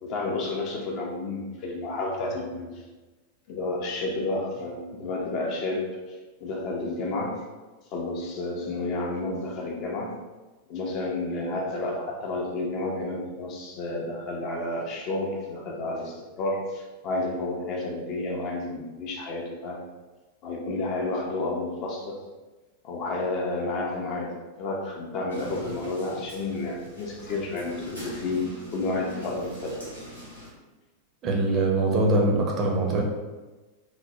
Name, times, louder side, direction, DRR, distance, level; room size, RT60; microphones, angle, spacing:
voice 1, 0.0-2.8 3.5-7.4 7.9-10.1 10.7-19.8 20.4-22.2 22.8-24.3 24.6-28.5 28.7-29.8, left 2 dB, 40° left, 0 dB, 0.5 m, -31 dB
sound 1, 25.3-30.5, equal, 80° left, 0.8 m, -42 dB
voice 2, 31.2-33.0, right 2 dB, 30° right, 0 dB, 0.5 m, -23 dB
2.9 x 2.1 x 2.7 m, 1.2 s
figure-of-eight pair, 90°, 0 cm